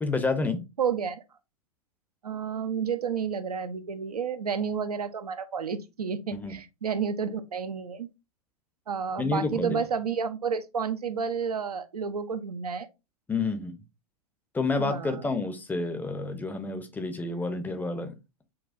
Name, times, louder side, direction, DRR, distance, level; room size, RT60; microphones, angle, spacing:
voice 1, 0.0-0.6 6.3-6.6 9.2-9.8 13.3-13.8 14.5-18.1, left 3 dB, 10° left, 0.5 m, -29 dB
voice 2, 0.8-1.2 2.2-8.1 8.9-12.9 14.8-15.2, right 6 dB, 80° right, 0.5 m, -31 dB
6.3 x 2.3 x 2.4 m
figure-of-eight pair, 95°, 20 cm